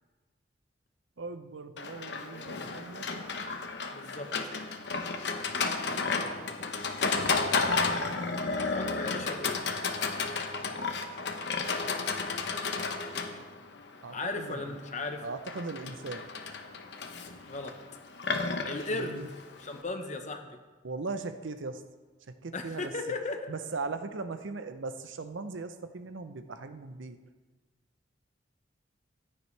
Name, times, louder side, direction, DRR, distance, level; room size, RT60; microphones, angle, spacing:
voice 1, 1.2-3.1 14.0-14.8 15.2-16.3 18.9-19.3 20.8-21.8 22.3-22.9 23.5-27.2, right 3 dB, 85° right, 10 dB, 0.7 m, -39 dB
Livestock farm animals working animals, 1.8-19.8, left 4 dB, 60° left, 0.9 m, -33 dB
voice 2, 3.9-4.3 8.7-9.6 14.1-15.2 17.5-17.7 18.7-19.2 19.6-20.6 22.5-23.4, left 3 dB, 40° left, 5 dB, 1.0 m, -36 dB
15.0 x 9.8 x 3.3 m, 1.3 s
head